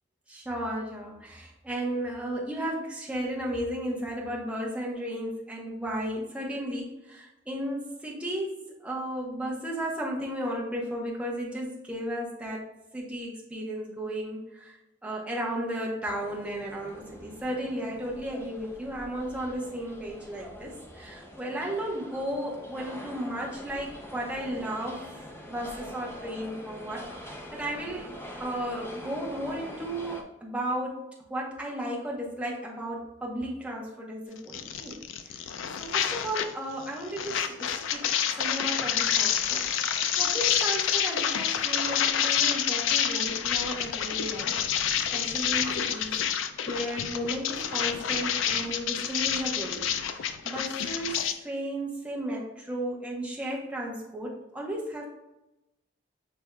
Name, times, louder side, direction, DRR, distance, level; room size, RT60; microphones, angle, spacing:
voice 1, 0.3-12.6 12.9-14.7 15.0-25.0 25.5-28.1 28.4-31.0 31.3-35.5 35.8-38.0 38.3-44.6 45.1-55.1, right 1 dB, 5° right, -3 dB, 0.8 m, -34 dB
sound 1, 16.1-30.2, equal, 10° left, 0.5 m, -44 dB
sound 2, 34.5-36.5 36.8-51.3, left 9 dB, 85° left, 0.4 m, -28 dB
6.3 x 3.4 x 2.3 m, 0.94 s
head